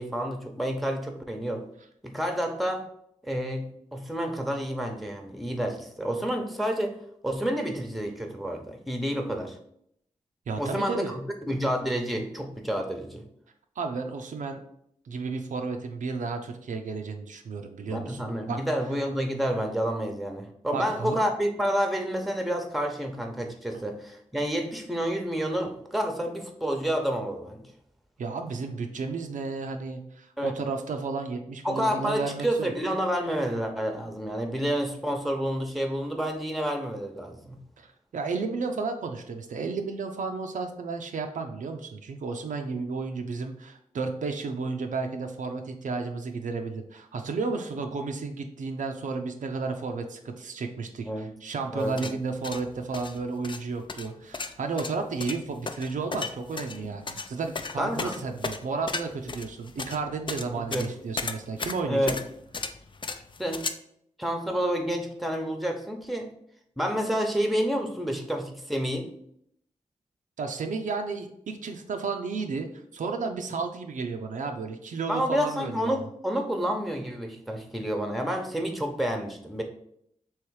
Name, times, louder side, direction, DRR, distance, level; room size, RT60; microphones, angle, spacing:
voice 1, 0.0-1.6 2.0-2.9 3.2-7.0 7.2-9.6 10.6-11.2 11.5-13.2 17.8-27.6 30.4-30.5 31.6-37.6 51.0-51.3 51.7-52.1 57.8-58.1 60.7-60.9 61.9-62.2 63.4-63.7 64.2-66.3 66.8-69.1 75.1-79.6, equal, ahead, 4 dB, 0.8 m, -29 dB
voice 2, 10.5-11.2 13.8-14.6 15.1-18.6 20.7-21.2 28.2-32.7 37.8-37.9 38.1-62.1 70.4-72.7 72.9-75.9, right 4 dB, 80° right, 5 dB, 0.5 m, -32 dB
sound 1, 51.8-63.7, left 4 dB, 40° left, 0.4 m, -35 dB
3.2 x 3.1 x 4.7 m, 0.71 s
cardioid pair, 50°, 13 cm